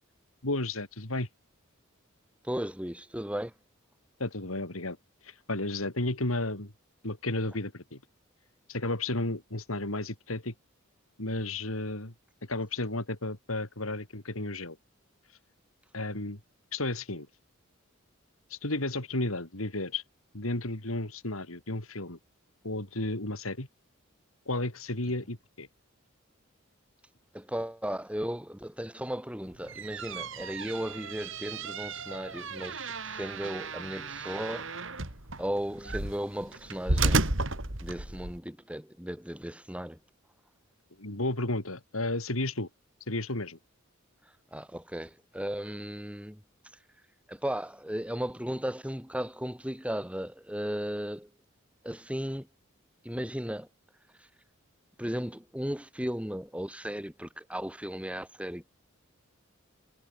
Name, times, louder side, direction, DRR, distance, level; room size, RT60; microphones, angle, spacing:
voice 1, 0.4-1.3 4.2-5.0 5.2-6.7 7.0-8.0 8.7-10.5 11.2-12.1 12.4-14.8 15.9-16.4 16.7-17.3 18.5-20.0 20.3-22.2 22.6-23.7 24.5-25.7 41.0-42.7 43.1-43.6, left 2 dB, 80° left, 4.0 m, -33 dB
voice 2, 2.4-3.5 27.3-35.0 35.4-37.3 37.8-40.0 44.5-46.4 47.3-51.3 51.8-52.5 53.0-53.7 54.2-54.3 55.0-58.7, equal, 5° right, 3.4 m, -36 dB
sound 1, 29.5-38.4, right 3 dB, 65° right, 3.6 m, -33 dB
head